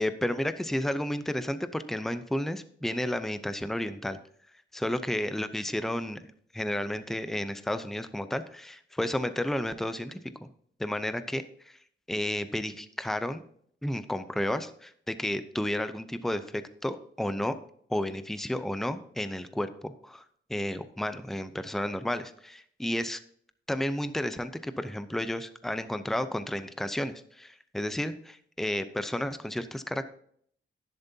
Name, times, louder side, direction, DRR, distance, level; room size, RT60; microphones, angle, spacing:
voice 1, 0.0-4.2 4.7-6.3 6.5-10.2 10.8-11.4 12.1-13.4 13.8-17.5 17.9-20.2 20.5-23.2 23.7-30.0, left 1 dB, ahead, 11 dB, 0.6 m, -32 dB
11.5 x 10.5 x 2.8 m, 0.62 s
wide cardioid pair, 120°, 19 cm